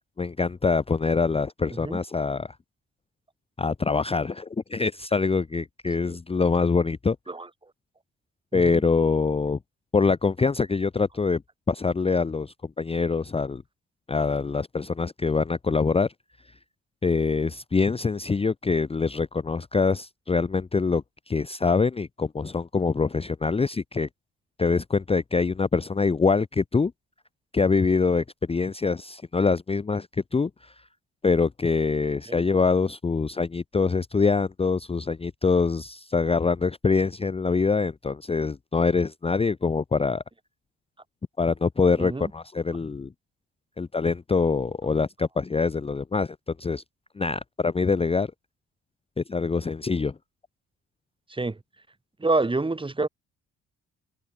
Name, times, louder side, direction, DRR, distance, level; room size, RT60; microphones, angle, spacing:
voice 1, 0.2-2.6 3.6-7.2 8.5-9.6 9.9-11.4 11.7-13.6 14.1-16.1 17.0-24.1 24.6-26.9 27.5-30.7 31.2-40.2 41.4-43.1 43.8-46.8 47.2-48.3 49.2-50.1, left 4 dB, 20° left, 0.7 m, -24 dB
voice 2, 42.0-42.3 51.3-51.6 52.2-53.1, right 3 dB, 15° right, 2.1 m, -27 dB
cardioid pair, 90°, 30 cm